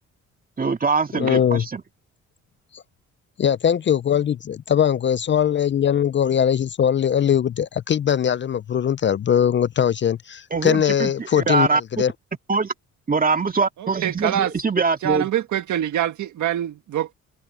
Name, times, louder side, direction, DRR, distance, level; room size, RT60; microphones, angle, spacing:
voice 1, 0.6-1.8 10.5-11.8 12.5-12.7 13.1-15.3, right 4 dB, 30° right, 2.3 m, -23 dB
voice 2, 1.2-1.6 2.7-2.8 3.4-12.1, left 9 dB, 40° left, 0.5 m, -21 dB
voice 3, 13.8-14.5 15.0-17.1, right 11 dB, 70° right, 1.7 m, -24 dB
cardioid pair, 90°, 30 cm